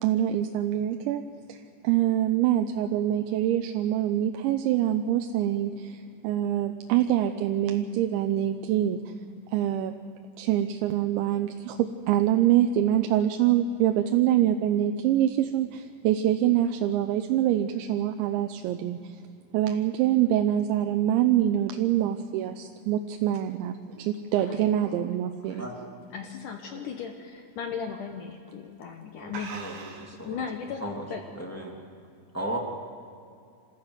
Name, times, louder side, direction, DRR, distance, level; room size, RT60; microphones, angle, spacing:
voice 1, 0.0-1.2 1.5-9.0 9.5-9.9 10.4-19.2 19.5-25.7, right 11 dB, 85° right, 5 dB, 3.1 m, -25 dB
sound 1, 23.2-26.3 26.7-27.0 27.4-27.5 28.3-28.5 28.8-28.9 29.3-30.2, right 5 dB, 55° right, 3.2 m, -44 dB
voice 2, 24.4-25.1 25.4-25.7 26.1-29.6 30.2-31.6, left 6 dB, 70° left, 4 dB, 2.0 m, -37 dB
voice 3, 29.2-30.4 30.8-31.0 31.3-31.8 32.3-32.6, right 1 dB, 5° left, -1 dB, 1.3 m, -35 dB
27.0 x 14.5 x 8.0 m, 2.5 s
omnidirectional pair, 5.2 m